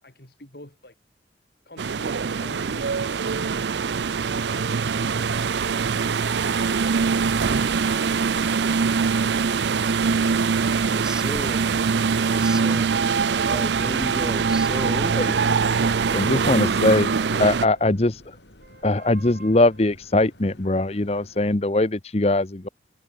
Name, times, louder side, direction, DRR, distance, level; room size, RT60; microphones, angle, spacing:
voice 1, 0.0-0.9 1.7-3.2 17.0-17.5, left 1 dB, 60° left, 4.0 m, -47 dB
sound 1, 1.8-17.7, right 5 dB, 85° right, 0.5 m, -23 dB
sound 2, 1.9-21.6, left 1 dB, 85° left, 5.5 m, -51 dB
voice 2, 10.8-11.8 12.2-13.0 13.5-15.2 16.1-16.8, equal, 5° right, 0.7 m, -34 dB
voice 3, 16.1-18.4 18.8-22.7, left 2 dB, 35° left, 0.9 m, -21 dB
sound 3, 18.6-21.2, right 3 dB, 60° right, 4.3 m, -49 dB
head